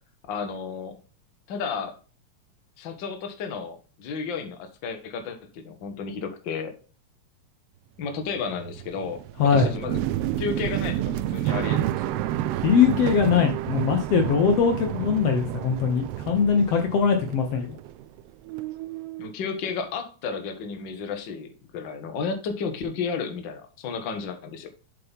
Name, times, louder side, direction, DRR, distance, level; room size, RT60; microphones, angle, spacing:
voice 1, 0.3-1.0 1.5-2.0 2.8-6.7 8.0-10.0 10.4-12.3 19.2-24.7, left 5 dB, 50° left, 6 dB, 1.6 m, -32 dB
sound 1, 8.1-18.2 18.5-19.3, right 13 dB, 90° right, 1.4 m, -30 dB
voice 2, 9.4-9.7 12.6-17.8, left 6 dB, 65° left, 4 dB, 1.8 m, -21 dB
7.6 x 5.9 x 3.5 m, 0.37 s
omnidirectional pair, 3.3 m